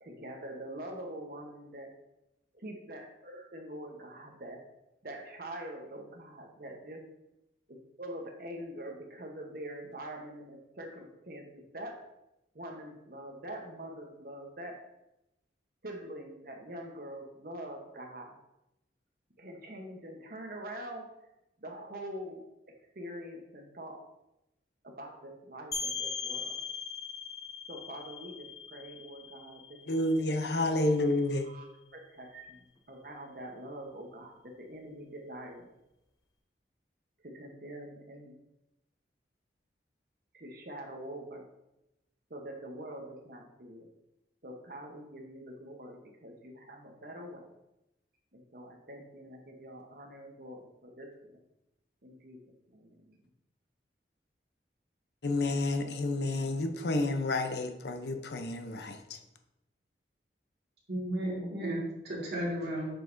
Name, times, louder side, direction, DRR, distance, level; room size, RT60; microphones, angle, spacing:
voice 1, 0.0-1.9 2.5-4.6 5.0-7.0 7.7-12.1 12.5-14.8 15.8-18.4 19.4-21.1 21.6-22.4 22.9-24.0 24.8-26.6 27.7-30.2 30.5-30.7 31.4-31.6 31.9-35.7 37.2-38.4 40.3-41.5 42.3-43.9 44.4-47.5 48.3-51.4 52.0-52.4 52.7-53.2, right 1 dB, 55° right, 2 dB, 1.0 m, -44 dB
sound 1, 25.7-31.2, left 5 dB, 20° left, 0.6 m, -40 dB
voice 2, 29.9-31.5 55.2-59.2, left 2 dB, 70° left, 6 dB, 0.7 m, -30 dB
voice 3, 60.9-62.9, right 1 dB, 70° right, -4 dB, 2.0 m, -34 dB
7.4 x 5.3 x 2.6 m, 0.91 s
head